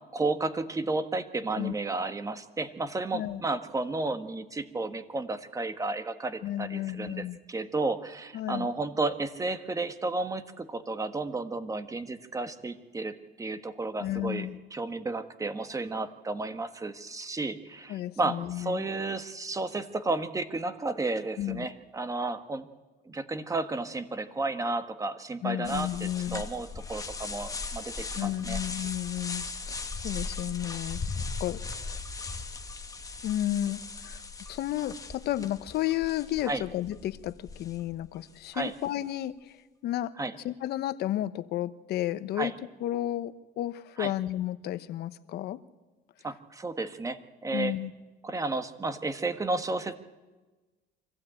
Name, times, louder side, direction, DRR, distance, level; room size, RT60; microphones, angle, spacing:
voice 1, 0.1-22.7 23.0-28.8 36.5-36.6 38.5-38.7 40.2-40.3 42.4-42.5 44.0-44.1 46.2-47.7 48.2-49.9, right 3 dB, 20° right, 9 dB, 1.4 m, -32 dB
voice 2, 6.4-7.4 8.3-8.7 14.0-14.6 17.9-18.8 21.4-21.7 25.4-26.4 28.2-32.0 33.2-34.2 34.5-39.5 39.8-40.1 40.4-42.5 42.8-45.6 47.5-47.9, left 13 dB, 75° left, 12 dB, 1.0 m, -32 dB
sound 1, 25.6-38.2, left 4 dB, 20° left, 1.3 m, -38 dB
24.5 x 15.5 x 8.8 m, 1.2 s
cardioid pair, 110°, 17 cm